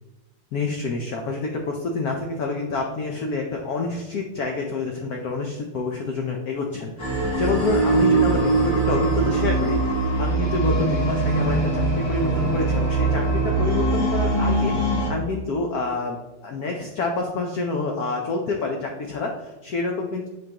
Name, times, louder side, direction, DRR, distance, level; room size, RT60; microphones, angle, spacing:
voice 1, 0.5-14.7 15.1-16.2 16.4-20.3, left 3 dB, 60° left, 1 dB, 1.0 m, -27 dB
sound 1, 7.0-15.1, right 2 dB, 45° left, 2.2 m, -22 dB
10.5 x 3.8 x 2.9 m, 1.1 s
omnidirectional pair, 2.3 m